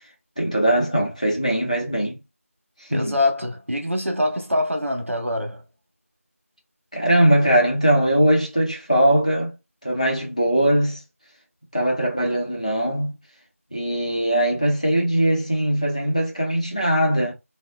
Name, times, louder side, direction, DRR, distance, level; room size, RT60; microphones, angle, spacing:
voice 1, 0.4-2.2 2.8-3.2 6.9-9.5 9.8-11.0 11.7-13.1 13.7-17.3, right 1 dB, 30° left, 0.6 m, -20 dB
voice 2, 2.9-5.6, left 1 dB, 60° right, 1.1 m, -24 dB
3.6 x 2.0 x 2.3 m
figure-of-eight pair, 180°, 8 cm